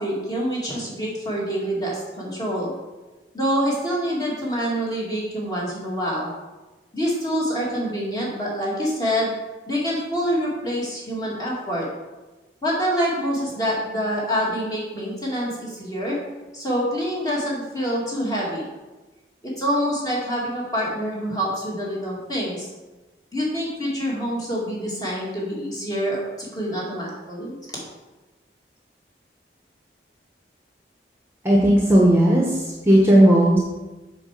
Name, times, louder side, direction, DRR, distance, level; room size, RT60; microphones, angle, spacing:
voice 1, 0.0-2.7 3.3-6.3 6.9-9.3 9.7-11.9 12.6-16.2 16.5-18.6 19.4-22.7 23.3-27.8, equal, 20° left, -5 dB, 2.2 m, -26 dB
voice 2, 31.4-33.6, right 1 dB, 15° right, -3 dB, 1.1 m, -15 dB
7.2 x 4.6 x 6.6 m, 1.2 s
head